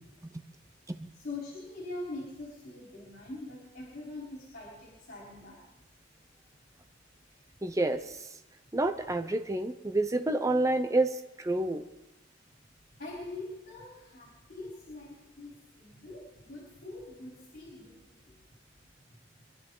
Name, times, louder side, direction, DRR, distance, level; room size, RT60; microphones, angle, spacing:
voice 1, 1.1-5.6 13.0-18.3, left 2 dB, 50° left, -5 dB, 4.2 m, -43 dB
voice 2, 7.6-8.2 8.7-11.8, right 2 dB, 15° right, 7 dB, 0.7 m, -28 dB
24.5 x 12.0 x 3.9 m, 1.0 s
head